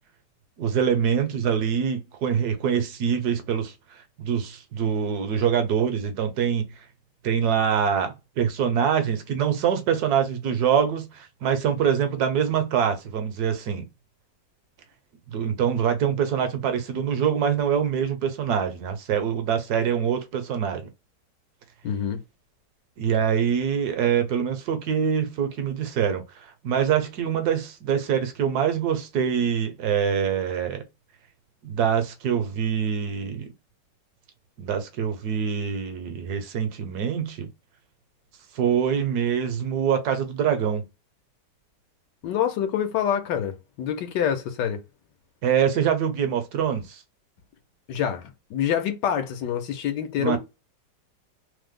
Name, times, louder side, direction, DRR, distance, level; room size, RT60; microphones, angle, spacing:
voice 1, 0.6-3.7 4.2-6.7 7.2-13.8 15.3-20.9 23.0-30.8 31.6-33.5 34.6-37.5 38.5-40.9 45.4-47.0 50.2-50.4, right 8 dB, 70° right, 1.1 m, -24 dB
voice 2, 21.8-22.2 42.2-44.8 47.9-50.4, left 9 dB, 80° left, 1.3 m, -26 dB
3.1 x 2.0 x 3.5 m
omnidirectional pair, 1.9 m